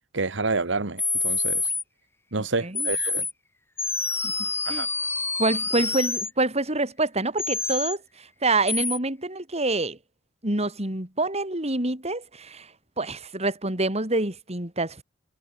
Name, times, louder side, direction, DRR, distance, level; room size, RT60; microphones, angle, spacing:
voice 1, 0.1-1.7 2.3-3.2 4.6-4.9, right 3 dB, 70° right, 1.6 m, -28 dB
sound 1, 1.0-1.8 2.8-3.3 3.8-6.3 7.4-8.0 8.7-9.0, left 4 dB, 15° left, 2.9 m, -27 dB
voice 2, 5.4-10.0 10.4-15.0, right 2 dB, 35° right, 5.0 m, -27 dB
head